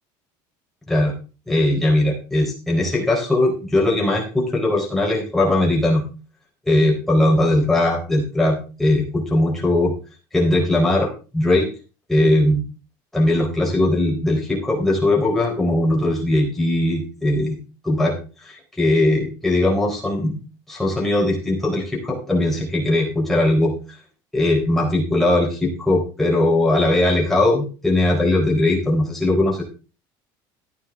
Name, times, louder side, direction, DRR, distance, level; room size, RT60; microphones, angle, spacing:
voice 1, 1.5-6.0 6.7-9.9 10.3-11.7 12.1-12.6 13.1-17.6 17.8-18.1 18.4-20.3 20.7-23.7 24.3-29.6, left 1 dB, 5° left, -2 dB, 3.9 m, -19 dB
14.0 x 9.9 x 3.6 m, 0.33 s
cardioid pair, 170°, 10 cm